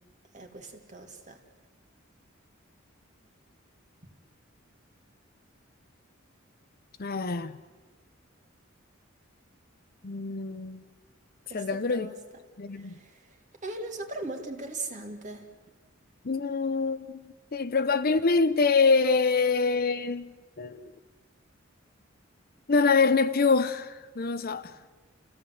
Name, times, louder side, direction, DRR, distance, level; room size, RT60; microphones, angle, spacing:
voice 1, 0.3-1.4 11.5-12.2 12.7-15.5, right 2 dB, 40° right, 2.5 m, -39 dB
voice 2, 7.0-7.6 10.0-10.8 11.5-12.1 12.6-12.9 16.2-20.8 22.7-24.7, left 4 dB, 50° left, 0.7 m, -25 dB
30.0 x 16.5 x 7.8 m
head